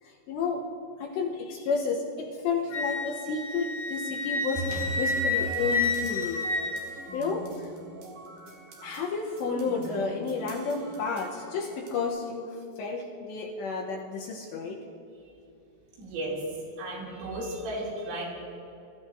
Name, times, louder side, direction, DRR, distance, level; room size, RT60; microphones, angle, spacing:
voice 1, 0.3-0.6 1.0-6.4 7.1-7.7 8.8-14.8, left 4 dB, 75° left, -1 dB, 2.7 m, -31 dB
Wind instrument woodwind instrument, 2.7-7.3, left 3 dB, 60° left, 2.2 m, -30 dB
sound 1, 4.5-12.1, right 3 dB, 60° right, 2.4 m, -41 dB
voice 2, 16.0-16.4 16.8-18.2, right 1 dB, 80° right, -4 dB, 5.3 m, -34 dB
24.0 x 14.0 x 2.6 m, 2.7 s
omnidirectional pair, 5.9 m